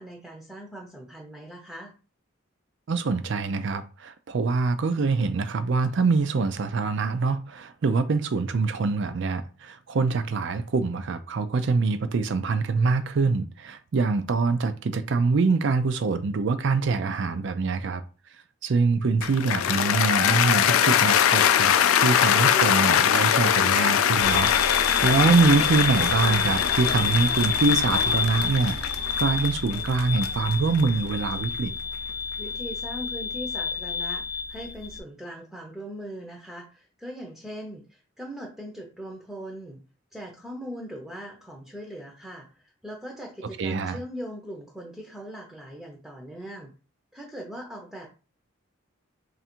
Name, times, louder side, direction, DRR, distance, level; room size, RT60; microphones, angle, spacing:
voice 1, 0.0-1.9 32.4-39.8 40.1-42.5 42.8-46.7 47.1-48.1, equal, ahead, 0.6 m, -40 dB
voice 2, 2.9-18.0 18.6-28.8 29.2-31.7 43.6-44.0, right 4 dB, 60° right, 0.4 m, -24 dB
Cheering / Applause, 19.2-31.4, left 9 dB, 85° left, 0.4 m, -22 dB
sound 1, 24.2-35.0, left 5 dB, 50° left, 0.7 m, -29 dB
3.4 x 2.5 x 4.3 m
head